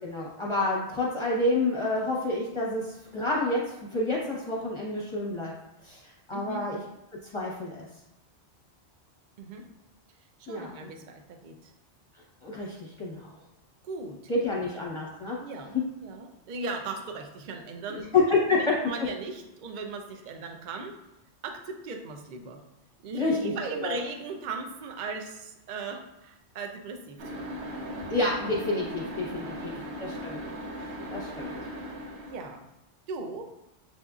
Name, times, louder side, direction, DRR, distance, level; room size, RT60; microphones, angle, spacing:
voice 1, 0.0-5.5 5.8-6.0 6.3-6.8 7.3-7.8 10.5-10.9 12.4-13.3 14.3-15.4 18.1-18.6 23.2-23.5 23.8-24.0 28.1-29.7 30.0-30.4 31.1-31.6, left 2 dB, 30° left, -5 dB, 0.9 m, -28 dB
voice 2, 6.3-6.6 9.4-9.6 10.4-11.7 13.8-14.6 15.4-18.1 18.5-20.9 21.4-22.6 23.0-27.6 27.9-28.0 29.3-29.9 32.2-32.7 33.1-33.5, right 4 dB, 55° right, 4 dB, 0.6 m, -38 dB
sound 1, 27.2-32.6, equal, 70° right, 0.9 m, -38 dB
7.3 x 2.6 x 2.3 m, 0.90 s
omnidirectional pair, 1.2 m